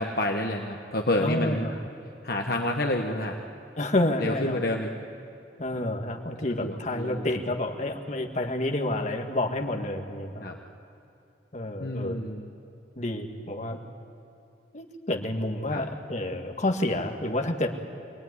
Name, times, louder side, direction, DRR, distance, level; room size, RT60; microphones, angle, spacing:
voice 1, 0.0-1.8 2.2-3.4 4.2-5.1 6.6-7.3 10.4-10.6 11.8-12.5 15.7-15.8, left 1 dB, 55° left, 2 dB, 1.2 m, -29 dB
voice 2, 1.2-1.7 3.8-4.6 5.6-10.5 11.5-12.2 13.0-13.8 14.7-17.7, left 1 dB, 40° left, 3 dB, 1.8 m, -29 dB
24.5 x 19.0 x 9.7 m, 2.6 s
head